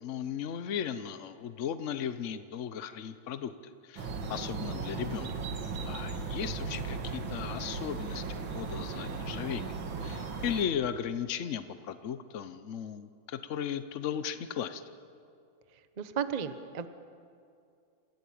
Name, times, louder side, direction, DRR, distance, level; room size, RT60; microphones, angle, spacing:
voice 1, 0.0-5.3 5.8-14.8, left 8 dB, 70° left, 11 dB, 0.7 m, -36 dB
sound 1, 4.0-10.6, right 4 dB, 65° right, 2.3 m, -37 dB
voice 2, 16.0-16.9, right 7 dB, 45° right, 10 dB, 0.5 m, -34 dB
28.5 x 16.0 x 8.6 m, 2.4 s
omnidirectional pair, 2.4 m